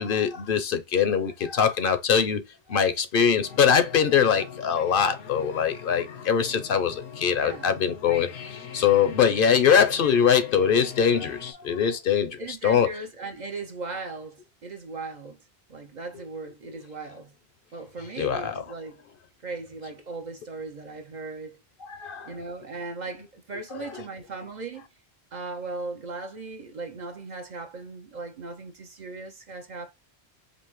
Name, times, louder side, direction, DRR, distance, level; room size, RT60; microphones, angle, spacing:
voice 1, 0.0-2.4 2.7-8.3 8.7-12.9 18.2-18.6 21.9-22.3, left 7 dB, 60° left, 0.7 m, -22 dB
sound 1, 3.4-11.5, left 7 dB, 85° left, 1.0 m, -42 dB
voice 2, 7.3-7.7 12.4-15.4 15.7-17.3 17.7-19.0 19.4-21.6 22.3-24.9 25.3-29.9, right 3 dB, 50° right, 0.6 m, -38 dB
5.3 x 2.0 x 3.0 m
omnidirectional pair, 1.1 m